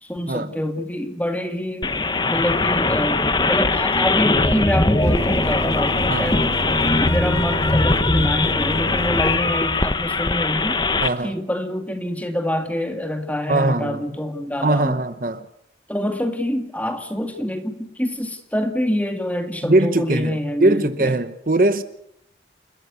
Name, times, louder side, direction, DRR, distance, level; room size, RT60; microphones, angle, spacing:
voice 1, 0.0-1.9 2.3-6.5 6.8-10.8 11.2-15.0 15.9-21.1, equal, 10° left, 2.3 m, -26 dB
sound 1, 1.8-11.1, left 3 dB, 25° left, 0.9 m, -20 dB
sound 2, 5.0-9.4, equal, 65° right, 2.6 m, -30 dB
voice 2, 6.1-6.6 11.0-11.3 13.5-14.0 14.6-15.5 19.6-21.8, right 2 dB, 50° right, 1.0 m, -21 dB
29.0 x 14.0 x 8.3 m
head